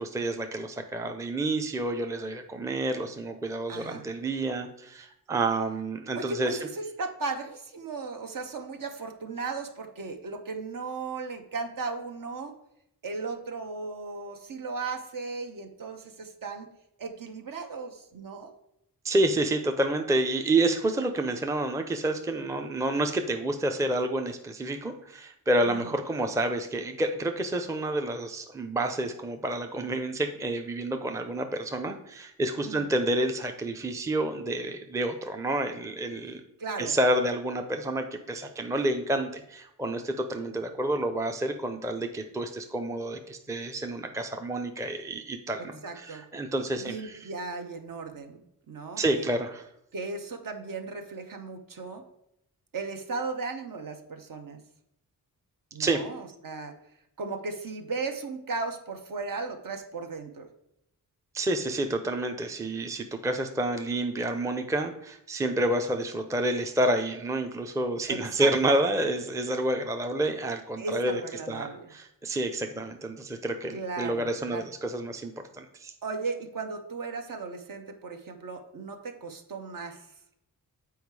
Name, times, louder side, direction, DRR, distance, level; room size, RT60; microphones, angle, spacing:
voice 1, 0.0-6.6 19.0-36.4 36.8-47.3 49.0-49.6 55.8-56.1 61.3-71.2 71.5-75.9, right 1 dB, 10° right, 5 dB, 0.5 m, -29 dB
voice 2, 3.7-4.1 6.1-12.5 13.0-16.7 17.0-18.5 25.6-25.9 32.6-32.9 36.6-37.0 45.8-46.2 46.8-48.4 48.7-49.3 49.9-52.0 52.7-54.6 55.7-56.7 57.2-60.5 68.1-68.5 70.8-71.9 73.7-74.6 76.0-80.1, right 4 dB, 60° right, 5 dB, 0.9 m, -36 dB
7.1 x 4.6 x 4.7 m, 0.79 s
wide cardioid pair, 115°, 37 cm